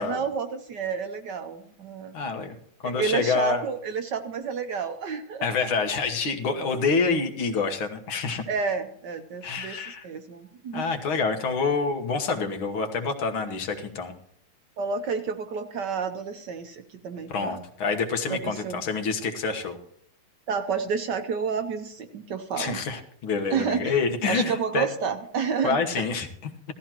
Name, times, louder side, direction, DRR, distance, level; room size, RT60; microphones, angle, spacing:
voice 1, 0.0-2.1 2.8-5.4 8.5-10.9 14.8-17.6 18.3-18.8 20.5-22.8 23.5-23.9 24.2-26.0, right 6 dB, 65° right, 7 dB, 1.2 m, -30 dB
voice 2, 2.1-2.5 2.8-3.6 5.4-8.4 9.4-10.1 10.7-14.1 17.3-19.8 22.6-24.9 25.6-26.5, left 4 dB, 70° left, 6 dB, 2.1 m, -27 dB
17.0 x 13.5 x 3.0 m, 0.68 s
omnidirectional pair, 2.4 m